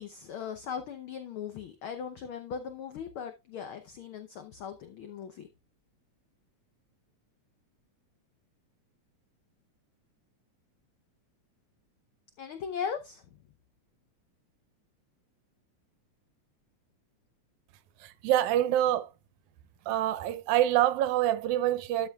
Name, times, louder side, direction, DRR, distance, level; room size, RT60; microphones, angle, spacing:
voice 1, 0.0-5.5 12.4-13.2, left 7 dB, 75° left, 1.2 m, -38 dB
voice 2, 18.0-19.1 19.9-22.1, right 12 dB, 90° right, 2.1 m, -26 dB
13.0 x 7.0 x 2.3 m
omnidirectional pair, 3.3 m